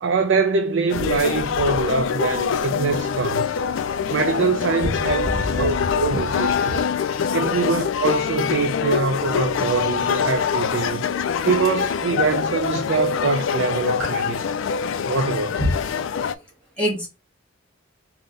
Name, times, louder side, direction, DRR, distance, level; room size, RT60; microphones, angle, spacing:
voice 1, 0.0-3.6 4.1-6.8 7.3-11.0 11.4-14.4 15.1-15.6, right 5 dB, 65° right, 0.4 m, -24 dB
sound 1, 0.9-16.3, left 7 dB, 75° left, 0.3 m, -24 dB
voice 2, 5.2-6.2 6.7-6.8 14.0-14.1 15.6-15.7 16.8-17.1, equal, 5° left, 1.7 m, -25 dB
3.7 x 2.1 x 3.8 m
head